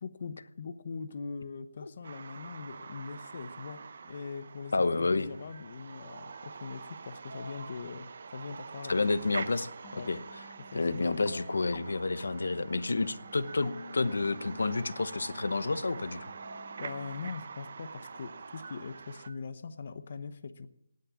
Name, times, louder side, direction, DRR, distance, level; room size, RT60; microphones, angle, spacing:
voice 1, 0.0-9.0 9.9-10.1 10.6-11.1 16.8-20.7, left 5 dB, 35° left, 11 dB, 0.9 m, -42 dB
sound 1, 2.0-19.3, right 5 dB, 35° right, 0.8 m, -46 dB
voice 2, 4.7-5.3 8.9-10.2 10.7-16.3, left 3 dB, 65° left, 14 dB, 1.1 m, -30 dB
sound 2, 4.8-7.0 7.3-10.0 11.0-15.3 16.2-19.4, right 2 dB, 55° right, 2.9 m, -55 dB
sound 3, 9.8-17.4, left 4 dB, 15° left, 1.3 m, -51 dB
18.5 x 6.6 x 8.6 m, 0.71 s
hypercardioid pair, 175°, 0 cm